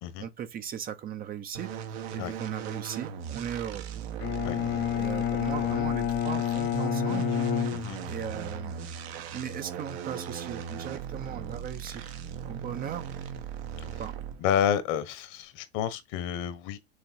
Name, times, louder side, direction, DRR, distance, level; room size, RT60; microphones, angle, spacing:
voice 1, 0.2-3.8 4.9-7.3 8.1-8.9 9.3-12.0 12.4-13.1 13.8-14.1, right 9 dB, 30° right, 0.7 m, -38 dB
sound 1, 1.5-14.5, right 8 dB, 70° right, 1.4 m, -38 dB
Bowed string instrument, 4.2-8.4, left 12 dB, 30° left, 0.7 m, -29 dB
voice 2, 14.4-16.8, left 9 dB, 50° left, 1.3 m, -29 dB
6.4 x 3.1 x 4.6 m
supercardioid pair, 120°, 32 cm